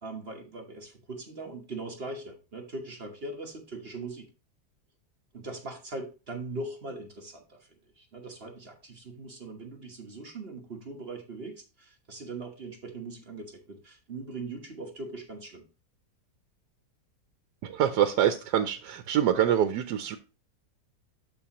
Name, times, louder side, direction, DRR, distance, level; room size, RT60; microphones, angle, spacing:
voice 1, 0.0-4.3 5.3-7.7 8.0-15.7, right 3 dB, 40° right, 1.3 m, -40 dB
voice 2, 17.6-20.2, right 10 dB, 85° right, 1.2 m, -25 dB
12.0 x 4.1 x 2.9 m
omnidirectional pair, 1.7 m